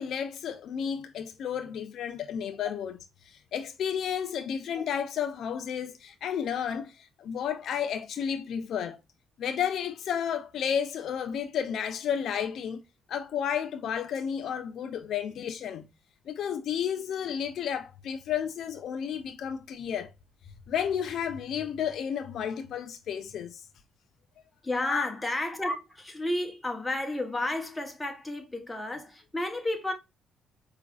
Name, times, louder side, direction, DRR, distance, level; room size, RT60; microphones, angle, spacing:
voice 1, 0.0-3.0 3.2-9.0 9.4-12.8 13.1-15.9 16.3-20.1 20.7-23.6 24.8-25.0, left 8 dB, 70° left, 0.3 m, -32 dB
voice 2, 24.6-29.9, left 1 dB, 15° left, 0.9 m, -32 dB
4.7 x 2.4 x 2.3 m
cardioid pair, 90°, 0 cm